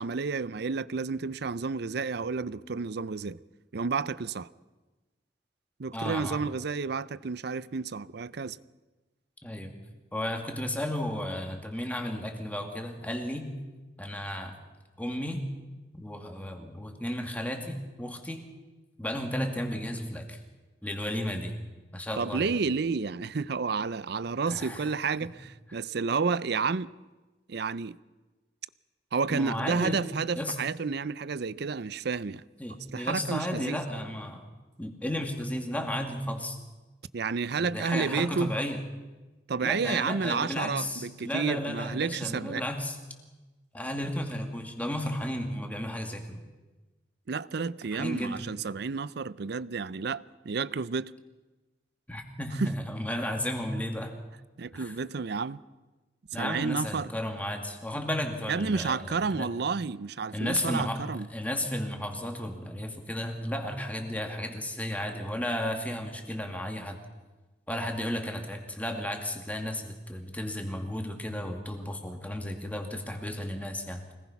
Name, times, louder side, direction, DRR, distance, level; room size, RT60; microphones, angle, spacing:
voice 1, 0.0-3.4 3.7-4.5 5.8-8.6 22.2-26.9 27.5-28.0 29.1-32.4 32.9-33.8 37.1-38.5 39.5-42.6 47.3-51.1 52.6-52.7 54.6-55.6 56.4-57.1 58.5-61.3, right 5 dB, 65° right, 0.6 m, -30 dB
voice 2, 5.9-6.5 9.4-9.7 10.1-13.5 14.0-14.5 15.0-15.4 16.0-18.5 19.0-20.4 20.8-21.5 21.9-22.5 24.5-24.9 25.2-25.3 29.3-30.0 30.3-30.6 32.6-34.4 34.8-36.6 37.6-38.8 39.6-43.0 43.7-46.4 47.9-48.4 52.1-54.1 54.7-54.9 56.3-59.0 59.3-59.5 60.3-61.0 61.3-67.0 67.7-74.1, left 1 dB, 10° left, 2.4 m, -33 dB
25.0 x 19.5 x 5.9 m
head